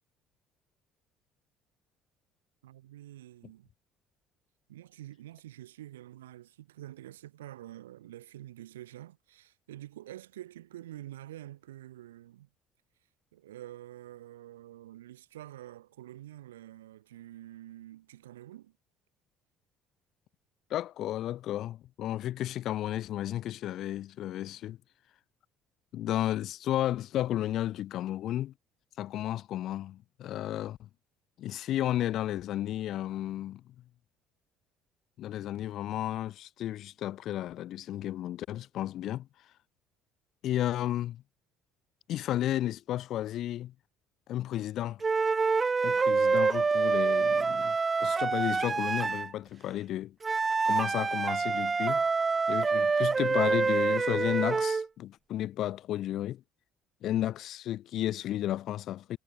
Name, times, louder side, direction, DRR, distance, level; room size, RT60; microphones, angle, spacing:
voice 1, 2.6-3.7 4.7-12.5 13.3-18.7, right 14 dB, 90° right, 6.3 m, -47 dB
voice 2, 20.7-24.8 25.9-28.5 29.0-30.9 31.4-33.6 35.2-39.3 40.4-41.2 42.1-43.7 44.3-45.0 45.8-50.2 50.6-52.0 52.5-56.4 57.0-59.2, left 13 dB, 60° left, 4.1 m, -33 dB
sound 1, 45.0-49.3 50.2-54.9, right 4 dB, 30° right, 1.2 m, -27 dB
hypercardioid pair, 65°, 0 cm